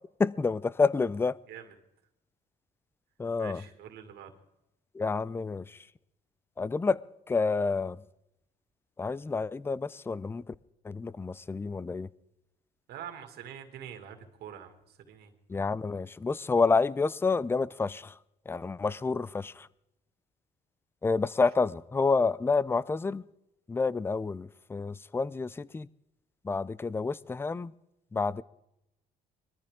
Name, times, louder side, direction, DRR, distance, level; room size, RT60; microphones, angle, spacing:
voice 1, 0.2-1.4 3.2-3.6 4.9-5.8 6.6-7.0 7.3-8.0 9.0-10.5 10.8-12.1 15.5-18.1 18.5-19.7 21.0-23.2 23.7-25.9 26.4-27.7 28.1-28.4, left 4 dB, 15° left, 0.4 m, -29 dB
voice 2, 3.4-4.3 12.9-15.3, right 9 dB, 75° right, 2.2 m, -45 dB
22.0 x 14.0 x 3.6 m
cardioid pair, 110°, 17 cm